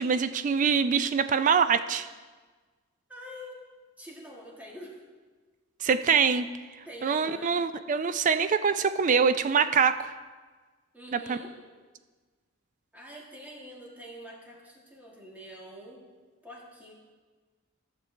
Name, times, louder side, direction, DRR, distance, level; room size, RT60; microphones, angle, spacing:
voice 1, 0.0-2.1 5.8-6.5 7.0-10.1 11.1-11.4, right 6 dB, 40° right, 12 dB, 0.4 m, -24 dB
voice 2, 3.1-3.6 4.0-5.0 6.8-7.5 10.9-11.5 12.9-16.0 16.4-16.9, equal, 10° right, -3 dB, 1.6 m, -45 dB
14.0 x 6.7 x 3.2 m, 1.4 s
head